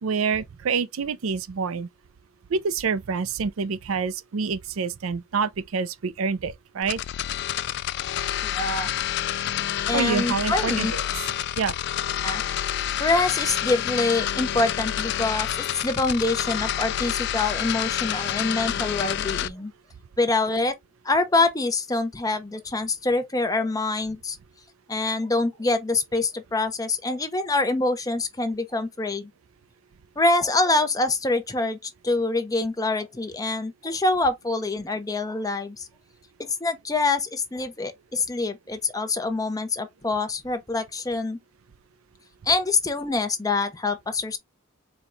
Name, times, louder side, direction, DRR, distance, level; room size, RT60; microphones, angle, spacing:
voice 1, 0.0-1.9 2.5-7.0 9.9-11.0 11.6-11.7, right 5 dB, 90° right, 0.5 m, -27 dB
sound 1, 6.8-19.5, left 11 dB, 55° left, 0.3 m, -28 dB
voice 2, 8.4-8.9 9.9-10.9 12.2-12.4 13.0-19.7 20.2-20.7 21.0-24.4 24.9-29.3 30.2-35.9 36.4-41.4 42.5-44.4, left 3 dB, 15° left, 0.6 m, -25 dB
4.5 x 2.2 x 3.8 m
head